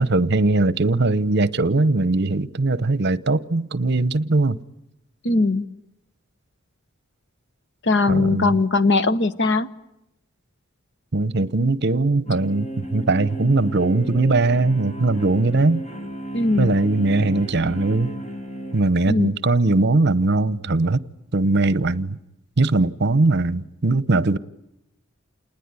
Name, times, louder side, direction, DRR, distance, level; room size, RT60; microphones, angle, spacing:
voice 1, 0.0-4.6 8.1-8.6 11.1-15.8 16.6-18.1 18.7-21.0 21.3-22.2 22.6-24.4, right 2 dB, 55° right, 0.9 m, -20 dB
voice 2, 5.2-5.6 7.9-9.7 16.3-16.7 19.1-19.3, left 3 dB, 55° left, 1.1 m, -19 dB
sound 1, 12.3-18.8, right 1 dB, 35° left, 3.0 m, -33 dB
28.0 x 20.0 x 9.8 m
head